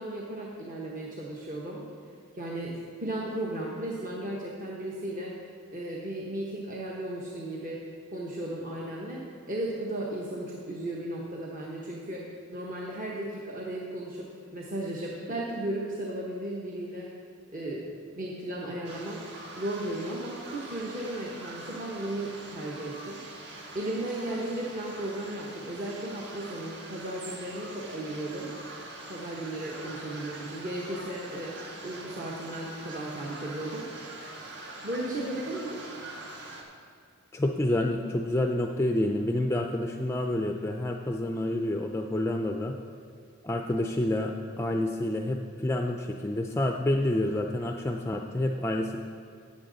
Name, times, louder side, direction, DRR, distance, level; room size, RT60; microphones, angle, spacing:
voice 1, 0.0-1.8 2.3-5.3 5.7-7.8 8.1-17.1 17.5-19.2 19.6-23.2 23.7-28.5 29.1-33.9 34.8-35.8, right 1 dB, 40° right, -4 dB, 1.1 m, -35 dB
sound 1, 18.8-36.6, right 2 dB, 55° right, 1.5 m, -44 dB
voice 2, 37.3-42.8 43.4-49.0, left 1 dB, 10° left, 3 dB, 0.3 m, -28 dB
12.5 x 8.5 x 3.9 m, 2.2 s
head